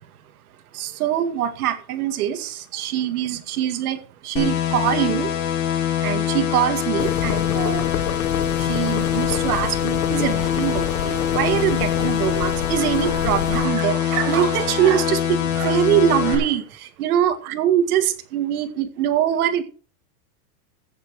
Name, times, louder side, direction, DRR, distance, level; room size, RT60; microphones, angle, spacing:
voice 1, 0.7-5.3 6.0-7.9 8.5-19.6, right 10 dB, 75° right, 2.1 m, -23 dB
sound 1, 4.4-16.4, left 10 dB, 40° left, 3.0 m, -24 dB
sound 2, 7.0-13.7, left 11 dB, 85° left, 1.3 m, -29 dB
sound 3, 7.8-16.7, right 7 dB, 55° right, 4.2 m, -34 dB
15.0 x 7.2 x 4.8 m
supercardioid pair, 165°, 45 cm